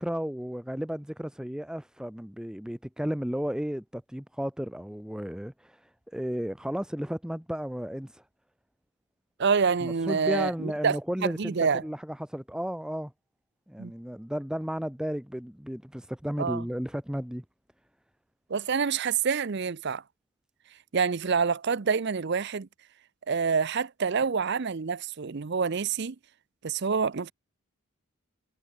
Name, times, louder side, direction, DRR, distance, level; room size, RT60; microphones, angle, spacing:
voice 1, 0.0-8.2 9.8-13.1 13.7-17.4, equal, 5° right, 0.7 m, -33 dB
voice 2, 9.4-11.8 13.8-13.9 16.4-16.6 18.5-20.0 20.9-22.7 23.3-26.2 26.6-27.3, right 5 dB, 55° right, 0.6 m, -27 dB
head